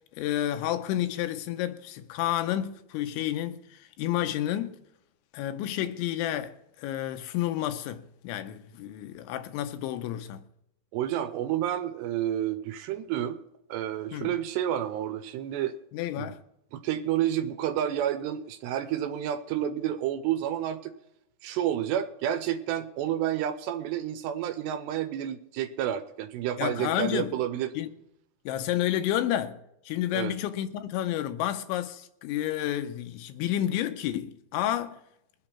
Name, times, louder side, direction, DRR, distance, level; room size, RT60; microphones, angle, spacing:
voice 1, 0.2-4.8 5.3-10.4 14.1-14.3 15.9-16.4 26.6-27.3 27.8-27.9 28.5-35.0, left 12 dB, 90° left, 3.2 m, -30 dB
voice 2, 10.9-13.4 13.7-15.8 16.2-16.3 16.7-20.9 21.4-27.7 30.1-30.3, right 11 dB, 80° right, 2.7 m, -30 dB
21.5 x 8.2 x 4.4 m
omnidirectional pair, 5.3 m